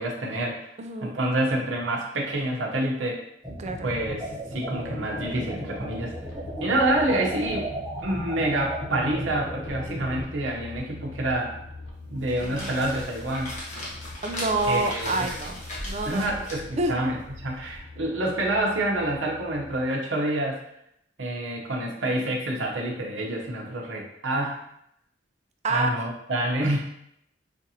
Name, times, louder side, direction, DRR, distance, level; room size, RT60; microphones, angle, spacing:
voice 1, 0.0-0.7 1.0-3.2 3.8-6.1 6.6-7.7 8.0-11.5 12.1-13.6 14.7-15.3 16.0-17.2 17.4-20.6 21.2-24.6 25.7-26.8, right 1 dB, 85° right, -1 dB, 0.8 m, -27 dB
voice 2, 0.8-1.2 3.6-3.9 12.4-12.8 14.2-16.4 16.8-17.1 25.6-25.9, right 2 dB, 35° right, 5 dB, 0.4 m, -28 dB
sound 1, 3.4-10.3, equal, 5° right, 0.9 m, -35 dB
sound 2, 4.8-19.8, left 2 dB, 70° left, 0.8 m, -43 dB
sound 3, 12.1-17.8, left 1 dB, 40° left, 1.1 m, -38 dB
5.1 x 2.5 x 2.8 m, 0.76 s
head